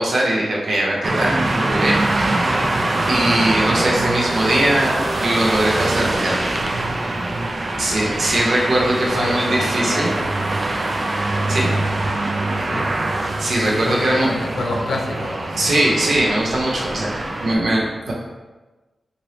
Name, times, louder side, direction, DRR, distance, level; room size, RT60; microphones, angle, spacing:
voice 1, 0.0-2.5 3.1-6.4 7.8-10.1 11.5-11.7 13.4-14.3 15.6-18.1, right 1 dB, 65° right, -3 dB, 0.8 m, -21 dB
sound 1, 1.0-17.5, right 2 dB, 35° right, 0.3 m, -23 dB
voice 2, 9.0-10.2 12.5-12.8 13.8-15.6, left 2 dB, 80° left, 0 dB, 0.6 m, -28 dB
4.0 x 2.6 x 3.2 m, 1.2 s
wide cardioid pair, 120°, 0 cm